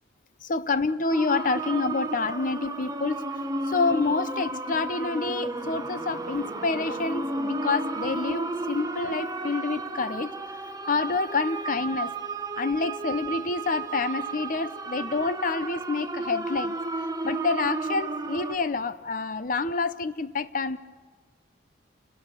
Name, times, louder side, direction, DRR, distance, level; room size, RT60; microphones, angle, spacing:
voice 1, 0.4-3.3 3.7-10.3 10.9-12.1 12.6-16.8 17.2-20.8, left 4 dB, 45° left, 14 dB, 0.6 m, -28 dB
sound 1, 1.1-18.5, right 2 dB, 20° right, 0.9 m, -33 dB
Wind instrument woodwind instrument, 3.2-10.0, left 7 dB, 65° left, 4.7 m, -54 dB
28.5 x 18.0 x 6.8 m, 1.5 s
head